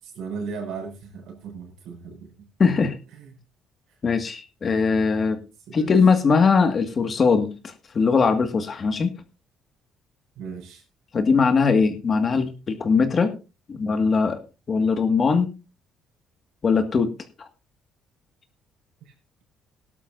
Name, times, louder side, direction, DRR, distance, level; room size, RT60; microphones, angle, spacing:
voice 1, 0.0-2.5 3.2-3.3 3.9-4.0 5.7-5.9 10.4-10.8 19.1-19.2, right 5 dB, 80° right, 3 dB, 5.3 m, -36 dB
voice 2, 2.6-3.0 4.0-5.4 5.7-9.1 11.1-13.4 13.7-14.4 14.7-15.5 16.6-17.1 17.4-17.5, left 5 dB, 40° left, 8 dB, 1.7 m, -20 dB
17.5 x 12.0 x 2.6 m, 0.29 s
cardioid pair, 105°, 0 cm